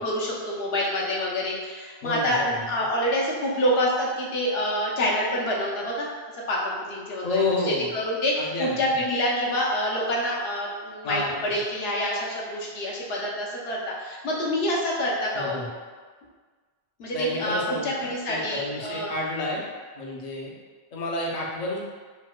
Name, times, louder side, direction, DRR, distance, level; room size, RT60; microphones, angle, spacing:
voice 1, 0.0-6.1 6.5-15.6 17.0-19.1, equal, 75° left, -3 dB, 0.9 m, -27 dB
voice 2, 2.0-2.6 7.2-7.9 8.4-8.7 11.0-11.5 15.4-15.7 17.1-19.7 19.9-20.6 20.9-21.8, left 2 dB, 45° left, -3 dB, 0.5 m, -30 dB
4.1 x 2.1 x 2.2 m, 1.5 s
omnidirectional pair, 1.1 m